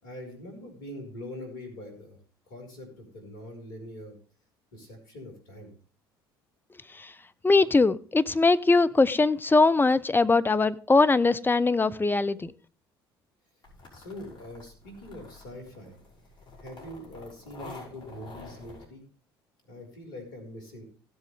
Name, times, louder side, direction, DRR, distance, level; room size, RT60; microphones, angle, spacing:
voice 1, 0.0-2.2 2.5-4.2 4.7-5.7 13.9-16.0 16.6-19.1 19.7-20.8, left 1 dB, 70° left, 5 dB, 5.2 m, -43 dB
voice 2, 7.4-12.5, left 3 dB, 15° left, 12 dB, 0.9 m, -21 dB
sound 1, 13.6-18.8, left 2 dB, 40° left, 5.5 m, -48 dB
17.0 x 7.9 x 3.5 m, 0.40 s
figure-of-eight pair, 55°, 12 cm